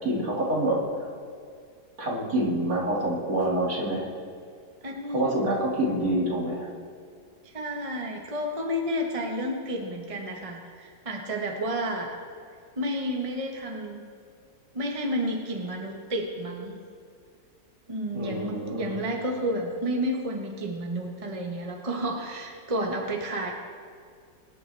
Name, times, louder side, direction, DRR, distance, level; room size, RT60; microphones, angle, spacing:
voice 1, 0.0-0.9 2.0-4.1 5.1-6.7 18.1-19.0, right 1 dB, 50° right, -4 dB, 2.7 m, -27 dB
voice 2, 4.8-5.3 7.4-12.2 12.8-14.0 14.7-16.8 17.9-23.5, equal, 20° right, 0 dB, 1.1 m, -31 dB
23.5 x 9.7 x 3.4 m, 2.2 s
omnidirectional pair, 1.9 m